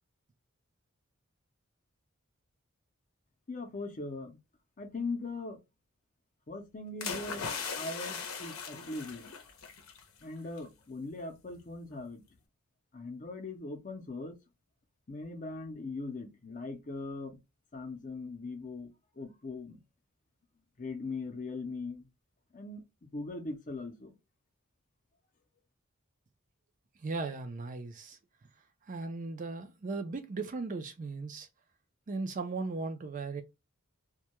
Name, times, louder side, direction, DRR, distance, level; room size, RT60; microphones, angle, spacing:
voice 1, 3.5-4.4 4.8-5.6 6.5-7.5 7.8-9.3 10.2-12.2 12.9-14.4 15.1-17.4 17.7-19.8 20.8-22.1 22.5-24.1, left 3 dB, 40° left, 0.6 m, -40 dB
sound 1, 7.0-10.0 10.4-10.6, left 5 dB, 80° left, 0.6 m, -39 dB
voice 2, 27.0-28.2 28.9-31.5 32.1-33.4, right 3 dB, 40° right, 0.4 m, -37 dB
2.2 x 2.2 x 2.8 m
head